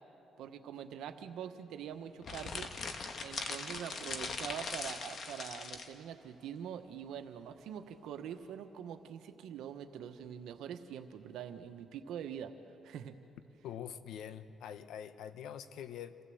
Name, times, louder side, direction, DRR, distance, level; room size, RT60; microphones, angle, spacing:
voice 1, 0.4-2.7 3.2-12.5 12.8-13.1, right 9 dB, 85° right, 7 dB, 1.2 m, -44 dB
sound 1, 2.2-5.9, left 4 dB, 55° left, 1.6 m, -41 dB
voice 2, 13.6-16.2, left 9 dB, 80° left, 12 dB, 0.9 m, -44 dB
27.5 x 15.5 x 7.9 m, 2.8 s
cardioid pair, 90°, 0 cm